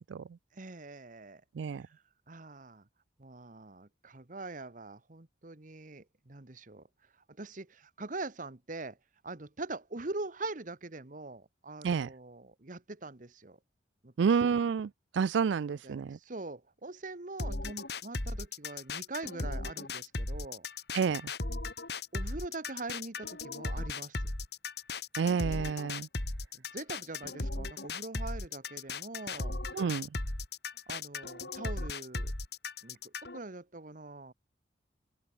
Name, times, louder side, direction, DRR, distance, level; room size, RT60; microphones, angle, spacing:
voice 1, 0.6-1.4 2.3-2.8 3.2-6.8 7.4-9.0 9.2-13.6 14.0-14.6 15.7-20.7 22.1-24.3 26.7-29.6 30.9-32.3 32.8-34.3, right 3 dB, 45° right, 1.3 m, -43 dB
voice 2, 14.2-16.2 20.9-21.2 25.1-26.1 29.7-30.1, right 6 dB, 85° right, 0.4 m, -29 dB
sound 1, 17.4-33.4, left 3 dB, 60° left, 2.8 m, -37 dB
head